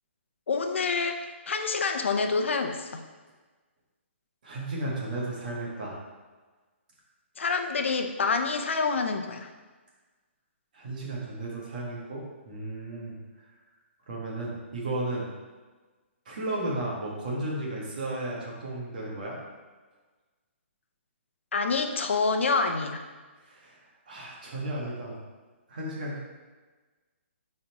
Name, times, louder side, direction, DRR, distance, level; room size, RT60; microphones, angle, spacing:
voice 1, 0.5-3.0 7.4-9.5 21.5-23.0, left 4 dB, 65° left, 6 dB, 0.7 m, -27 dB
voice 2, 4.4-6.0 10.7-13.2 14.1-15.3 16.2-19.4 23.4-23.8 24.1-25.2 25.7-26.2, right 2 dB, 40° right, -4 dB, 1.6 m, -34 dB
7.8 x 4.2 x 3.0 m, 1.3 s
hypercardioid pair, 180°, 7 cm